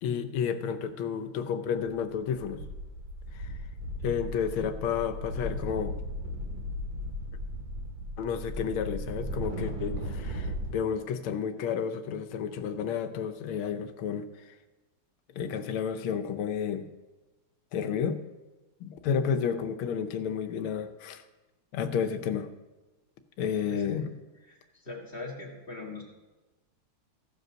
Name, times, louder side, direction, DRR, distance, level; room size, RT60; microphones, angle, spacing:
voice 1, 0.0-2.6 3.3-3.5 4.0-6.0 8.2-14.3 15.3-16.9 17.7-18.2 18.8-21.2 21.7-22.5 23.4-24.1, left 7 dB, 90° left, 9 dB, 1.6 m, -31 dB
sound 1, 1.9-2.0 2.2-10.7, equal, 50° right, 2.2 m, -36 dB
voice 2, 24.8-26.0, left 3 dB, 30° left, -1 dB, 1.8 m, -40 dB
15.5 x 5.3 x 6.2 m, 1.1 s
omnidirectional pair, 2.2 m